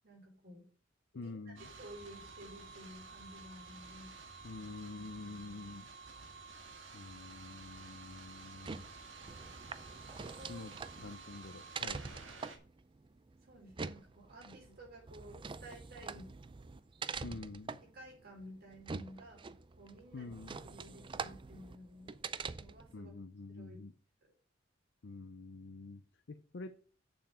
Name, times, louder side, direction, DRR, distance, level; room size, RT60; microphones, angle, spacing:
voice 1, 0.0-0.7 1.1-1.4 1.7-4.2 7.3-7.5 10.1-10.6 13.4-16.3 17.1-17.4 17.8-19.4 19.8-20.3 20.6-22.1 22.5-23.1 23.5-23.8, equal, 55° right, -1 dB, 4.5 m, -53 dB
voice 2, 1.1-1.7 4.4-5.9 6.9-8.9 10.5-12.0 14.5-14.6 17.2-17.8 20.1-20.6 22.9-23.9 25.0-26.0 26.3-26.8, left 3 dB, 65° left, 8 dB, 0.6 m, -47 dB
sound 1, 1.6-12.6, right 4 dB, 80° right, 1.8 m, -52 dB
sound 2, 8.4-22.9, right 4 dB, 25° right, 0.4 m, -45 dB
6.9 x 5.8 x 6.7 m, 0.42 s
head